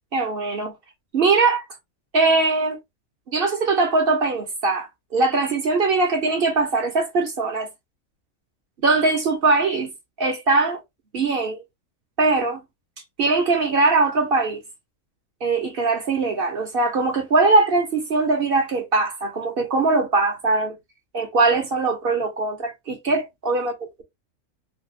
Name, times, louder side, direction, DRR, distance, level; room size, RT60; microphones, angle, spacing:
voice 1, 0.1-0.7 1.1-1.7 2.1-2.8 3.3-7.7 8.8-9.9 10.2-10.8 11.1-11.6 12.2-12.6 13.2-14.6 15.4-20.7 21.1-23.7, right 3 dB, 50° right, 0.8 m, -21 dB
3.3 x 2.4 x 2.7 m
omnidirectional pair, 1.5 m